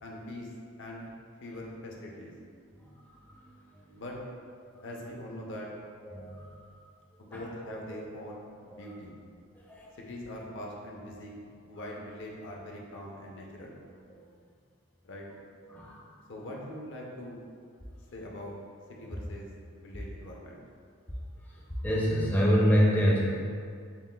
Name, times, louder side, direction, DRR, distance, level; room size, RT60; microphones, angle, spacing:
voice 1, 0.0-0.5 0.8-1.1 1.4-2.3 3.9-4.2 4.8-5.7 7.2-9.2 10.0-13.8 15.0-15.3 16.3-17.4 18.1-18.6 19.0-19.5 19.8-20.6, left 1 dB, 60° left, -1 dB, 0.5 m, -42 dB
voice 2, 6.1-6.5 7.3-7.4 8.8-8.9 9.7-9.9 15.7-16.0 21.8-23.2, equal, 10° left, -5 dB, 0.5 m, -25 dB
6.9 x 2.4 x 2.2 m, 2.2 s
head